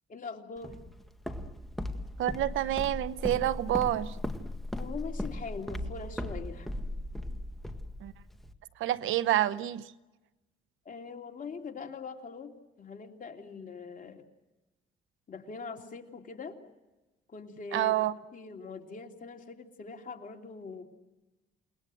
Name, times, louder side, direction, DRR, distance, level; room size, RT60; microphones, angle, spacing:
voice 1, 0.1-0.7 4.8-6.7 10.8-14.2 15.3-16.6 17.3-18.0 18.3-20.8, left 4 dB, 45° left, 3.1 m, -42 dB
Walk footsteps, 0.6-8.5, left 1 dB, ahead, 1.8 m, -37 dB
voice 2, 2.2-4.2 8.0-8.1 8.8-9.9 17.7-18.1, right 13 dB, 85° right, 0.9 m, -28 dB
29.0 x 19.5 x 7.7 m
cardioid pair, 90°, 20 cm